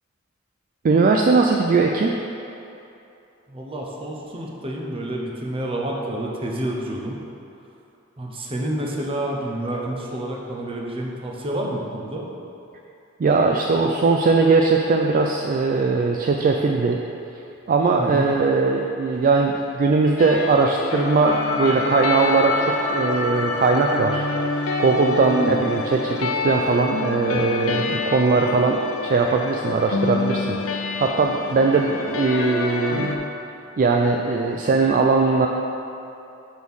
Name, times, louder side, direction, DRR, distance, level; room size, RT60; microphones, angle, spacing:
voice 1, 0.8-2.1 13.2-17.0 17.7-24.2 24.8-30.6 31.0-33.2 33.8-35.5, right 4 dB, 45° right, 2 dB, 0.3 m, -20 dB
voice 2, 3.5-7.2 8.2-12.2 18.0-18.3 25.3-25.6, right 1 dB, 30° right, -1 dB, 0.8 m, -29 dB
sound 1, 20.2-33.2, left 3 dB, 85° left, 0.5 m, -27 dB
6.2 x 6.1 x 3.6 m, 2.8 s
head